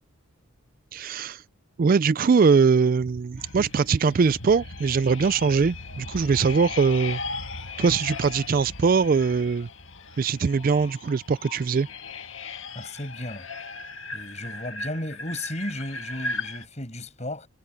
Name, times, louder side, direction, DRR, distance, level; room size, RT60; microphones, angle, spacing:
voice 1, 0.9-1.4 1.8-7.2 7.8-9.7 10.2-11.9, right 5 dB, 40° right, 0.3 m, -22 dB
sound 1, 3.4-16.6, left 3 dB, 60° left, 1.7 m, -37 dB
voice 2, 12.7-13.5 14.1-17.5, left 1 dB, 30° left, 8.0 m, -34 dB
head